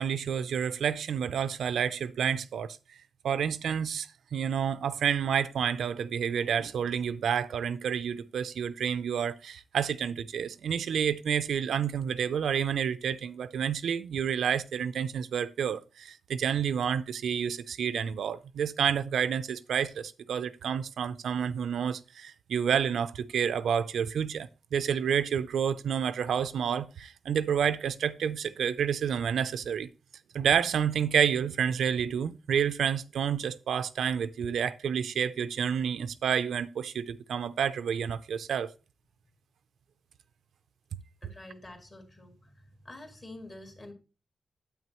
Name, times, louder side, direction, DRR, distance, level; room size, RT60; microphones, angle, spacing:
voice 1, 0.0-2.8 3.2-29.9 30.3-38.7, right 8 dB, 85° right, 0.5 m, -29 dB
voice 2, 41.2-43.9, left 1 dB, 30° left, 2.3 m, -47 dB
9.3 x 8.4 x 3.0 m
wide cardioid pair, 145°, 0 cm